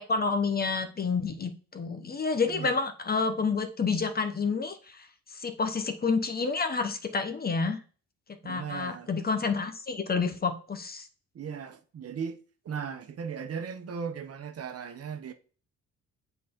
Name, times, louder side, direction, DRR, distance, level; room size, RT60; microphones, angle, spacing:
voice 1, 0.0-7.8 8.4-11.1, left 4 dB, 30° left, 1.0 m, -29 dB
voice 2, 2.5-2.8 8.4-9.1 11.3-12.4 12.6-15.3, right 6 dB, 50° right, 1.0 m, -37 dB
7.4 x 4.0 x 3.7 m
cardioid pair, 90°, 30 cm